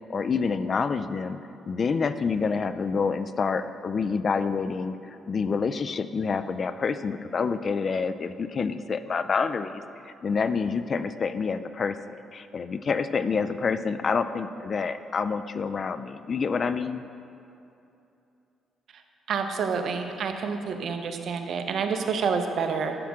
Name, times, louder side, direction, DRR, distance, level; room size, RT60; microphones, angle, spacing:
voice 1, 0.1-1.4 1.7-9.7 10.1-17.0, left 5 dB, 45° left, 12 dB, 0.4 m, -27 dB
voice 2, 19.3-23.0, right 5 dB, 65° right, 6 dB, 0.8 m, -28 dB
11.5 x 7.3 x 3.6 m, 2.8 s
cardioid pair, 90°, 0 cm